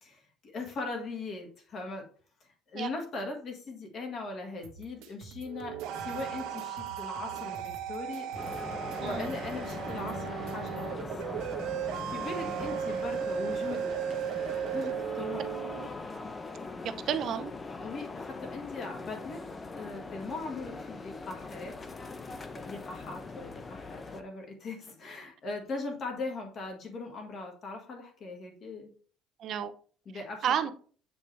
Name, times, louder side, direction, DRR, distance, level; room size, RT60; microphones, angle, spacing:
voice 1, 0.0-2.0 2.7-8.3 9.0-11.4 12.1-13.9 14.7-15.6 17.8-19.4 19.7-21.7 22.5-28.9 30.1-30.5, left 3 dB, 35° left, 1.7 m, -40 dB
sound 1, 4.6-10.8, right 5 dB, 90° right, 1.4 m, -50 dB
sound 2, 5.4-15.9, right 8 dB, 70° right, 1.0 m, -36 dB
sound 3, 8.3-24.2, left 3 dB, 15° left, 0.6 m, -41 dB
voice 2, 16.8-17.5 29.4-29.7 30.1-30.7, right 9 dB, 40° right, 0.6 m, -32 dB
8.2 x 5.2 x 3.3 m
cardioid pair, 180°, 0 cm